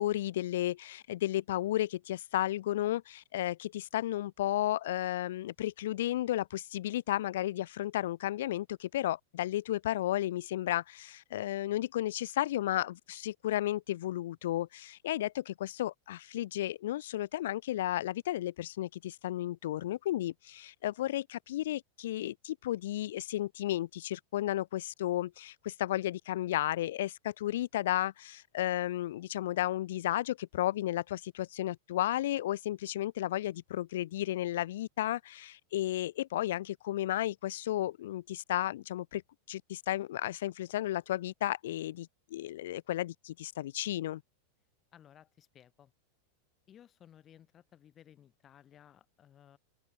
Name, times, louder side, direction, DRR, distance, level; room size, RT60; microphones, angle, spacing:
voice 1, 0.0-39.2 39.5-44.2, left 14 dB, 55° left, 0.7 m, -33 dB
voice 2, 44.9-45.9 46.7-49.6, left 10 dB, 25° left, 2.8 m, -58 dB
open air
figure-of-eight pair, 90°, 0 cm